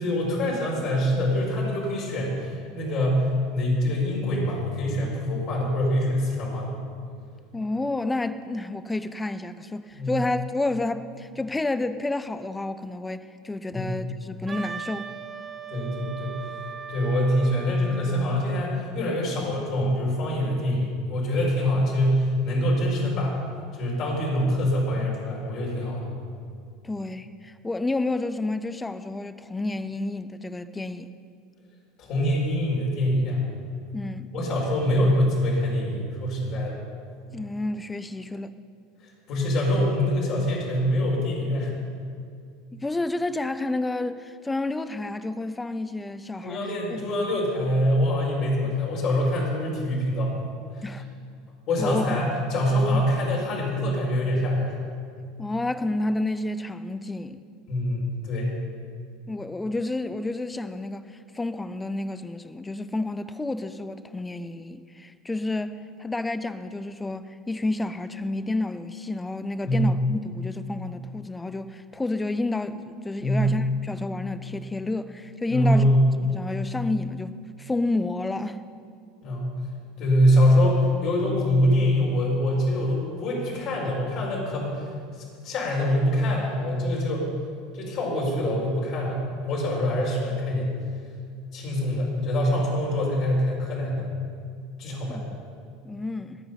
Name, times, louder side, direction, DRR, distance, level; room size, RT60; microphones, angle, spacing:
voice 1, 0.0-6.7 9.9-10.1 13.7-14.0 15.7-16.5 16.9-23.4 23.7-26.1 32.0-33.4 34.3-36.7 39.3-41.7 46.4-50.4 50.7-50.8 51.7-54.8 57.7-58.5 69.6-69.8 73.2-73.5 75.5-76.1 79.2-79.5 80.0-84.9 85.2-87.3 87.7-90.7 91.5-94.1 94.8-95.2, equal, 45° left, 4.9 m, -24 dB
voice 2, 7.5-15.1 26.8-31.1 33.9-34.3 37.3-38.5 42.7-47.1 50.8-51.0 51.8-52.2 52.9-53.0 55.4-57.4 59.3-75.9 76.2-78.6 95.1-95.2 95.8-96.4, left 2 dB, 10° left, 0.7 m, -30 dB
Wind instrument woodwind instrument, 14.5-18.3, right 6 dB, 25° right, 1.0 m, -38 dB
21.5 x 9.0 x 5.5 m
figure-of-eight pair, 75°, 0 cm